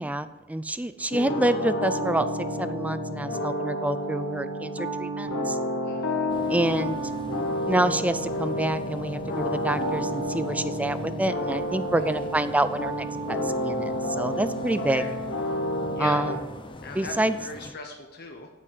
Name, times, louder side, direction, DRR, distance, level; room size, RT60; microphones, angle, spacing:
voice 1, 0.0-5.6 6.5-7.0 7.7-15.1 16.0-16.4 17.0-17.4, right 1 dB, 5° right, 13 dB, 0.3 m, -27 dB
voice 2, 1.0-1.3 5.8-6.3 12.0-12.2 14.9-15.1 15.9-16.2 16.8-18.5, left 4 dB, 50° left, 3 dB, 0.9 m, -40 dB
sound 1, 1.1-16.4, equal, 80° left, 1.8 m, -30 dB
sound 2, 6.3-17.7, left 2 dB, 25° left, 0.7 m, -42 dB
8.5 x 8.3 x 5.2 m, 1.1 s
head